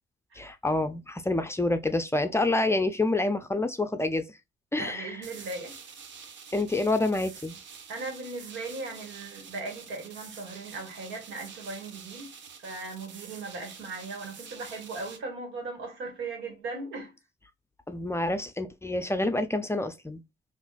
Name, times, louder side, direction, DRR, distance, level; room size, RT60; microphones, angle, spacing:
voice 1, 0.4-4.3 4.7-5.2 6.5-7.6 17.9-20.2, left 2 dB, 15° left, 0.5 m, -27 dB
voice 2, 4.7-5.7 7.9-17.1, right 3 dB, 85° right, 1.6 m, -38 dB
sound 1, 5.2-15.2, right 6 dB, 65° right, 0.8 m, -47 dB
3.6 x 2.6 x 2.4 m
cardioid pair, 90°, 20 cm